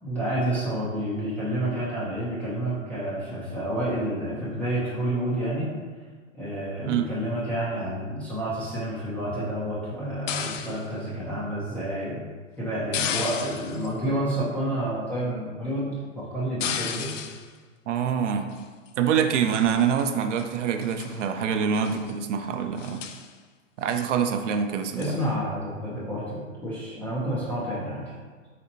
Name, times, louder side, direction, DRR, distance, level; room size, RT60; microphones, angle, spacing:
voice 1, 0.0-5.7 6.3-12.2 12.6-17.1 25.0-28.1, right 1 dB, 5° left, -10 dB, 0.3 m, -29 dB
sound 1, 10.3-10.9 12.9-13.9 16.6-17.5 18.5-18.9 19.5-20.1 20.4-20.5 20.8-21.2 21.7-22.1 22.4-22.5 22.8-23.3 23.9-24.1 25.0-25.2, left 8 dB, 70° left, 0.5 m, -33 dB
voice 2, 17.9-18.5 19.0-23.0 23.8-25.2, right 7 dB, 65° right, 7 dB, 0.5 m, -25 dB
4.2 x 4.2 x 2.6 m, 1.5 s
hypercardioid pair, 110°, 39 cm